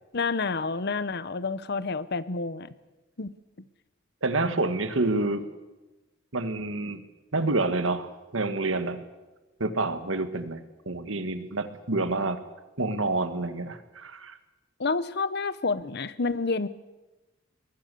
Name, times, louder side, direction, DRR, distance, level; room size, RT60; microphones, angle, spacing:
voice 1, 0.1-2.7 3.2-3.3 14.8-16.7, left 4 dB, 55° left, 16 dB, 0.9 m, -29 dB
voice 2, 4.2-5.4 6.3-7.0 7.3-9.0 9.6-12.4 12.8-14.4, right 2 dB, 80° right, 10 dB, 1.7 m, -28 dB
23.0 x 20.5 x 7.0 m, 1.1 s
head